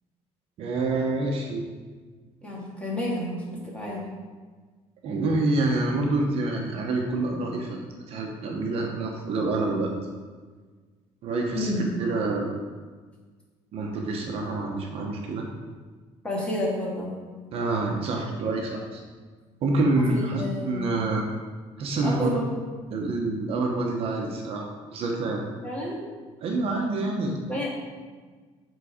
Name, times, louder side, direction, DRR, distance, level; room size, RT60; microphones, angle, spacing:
voice 1, 0.6-1.6 5.0-7.8 8.1-9.9 11.2-12.5 13.7-15.5 17.5-19.0 19.6-21.3 21.8-22.4 22.9-25.4 26.4-27.4, right 2 dB, 55° right, 0 dB, 1.0 m, -27 dB
voice 2, 2.4-4.1 11.5-11.9 16.2-17.1 20.0-20.9 22.0-22.5 25.6-26.0 27.5-27.7, left 1 dB, 10° left, -5 dB, 1.8 m, -30 dB
7.5 x 4.0 x 5.0 m, 1.5 s
cardioid pair, 155°, 12 cm